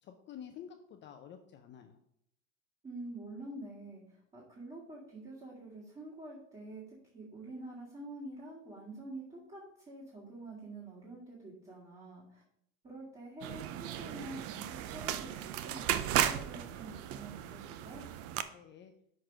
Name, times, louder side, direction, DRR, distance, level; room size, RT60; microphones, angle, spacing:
voice 1, 0.0-2.0 18.5-18.9, left 9 dB, 25° left, 5 dB, 0.5 m, -50 dB
voice 2, 2.8-12.4 12.8-18.0, right 2 dB, 15° right, -7 dB, 2.0 m, -47 dB
sound 1, 13.4-18.4, right 11 dB, 35° right, 0.5 m, -35 dB
6.1 x 4.6 x 4.9 m, 0.72 s
hypercardioid pair, 110°, 42 cm